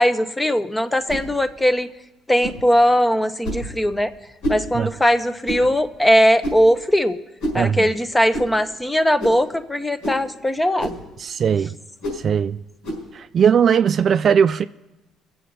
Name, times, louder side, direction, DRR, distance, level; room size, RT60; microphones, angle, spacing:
voice 1, 0.0-1.9 2.3-4.1 4.5-7.2 7.5-11.0, equal, 10° left, 0.8 m, -19 dB
sound 1, 1.1-1.3 2.4-2.6 3.4-3.7 4.4-4.6 5.4-5.7 6.4-6.7 7.4-7.6 8.3-8.5 9.2-9.4 10.0-10.2 10.8-11.0 12.0-12.2 12.8-13.0, right 1 dB, 85° left, 5.1 m, -28 dB
voice 2, 7.6-7.9 11.2-11.8 12.2-12.6 13.1-14.6, right 7 dB, 50° right, 0.3 m, -18 dB
22.5 x 7.7 x 4.1 m
cardioid pair, 95°, 0 cm